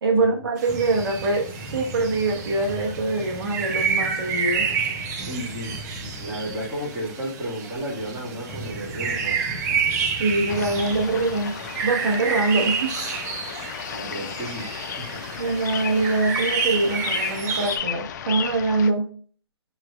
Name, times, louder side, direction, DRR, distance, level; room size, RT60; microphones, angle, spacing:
voice 1, 0.0-4.7 10.2-11.6 11.8-13.0 15.4-19.1, right 3 dB, 60° right, 1 dB, 1.1 m, -24 dB
sound 1, 0.6-17.8, right 6 dB, 40° right, 0.8 m, -30 dB
sound 2, 0.7-12.6, equal, 10° left, 0.8 m, -39 dB
voice 2, 5.3-5.7 6.0-9.9 13.9-15.4, equal, 10° right, -6 dB, 1.9 m, -33 dB
sound 3, 10.5-18.9, left 8 dB, 45° left, 0.4 m, -33 dB
6.0 x 3.2 x 2.4 m, 0.43 s
hypercardioid pair, 150°, 14 cm